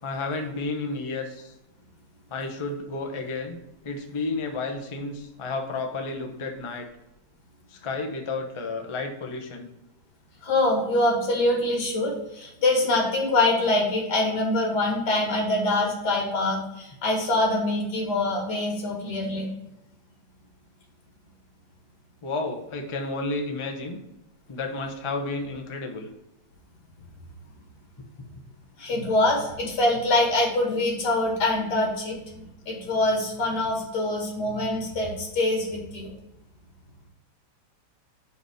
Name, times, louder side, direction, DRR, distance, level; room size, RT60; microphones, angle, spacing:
voice 1, 0.0-1.5 2.3-3.6 3.8-6.9 7.7-9.7 22.2-24.0 24.5-26.1 28.2-28.4, left 3 dB, 25° left, 3 dB, 0.6 m, -32 dB
voice 2, 10.4-19.5 28.8-36.1, left 2 dB, 60° left, -1 dB, 2.6 m, -24 dB
5.5 x 4.7 x 6.4 m, 0.88 s
omnidirectional pair, 2.0 m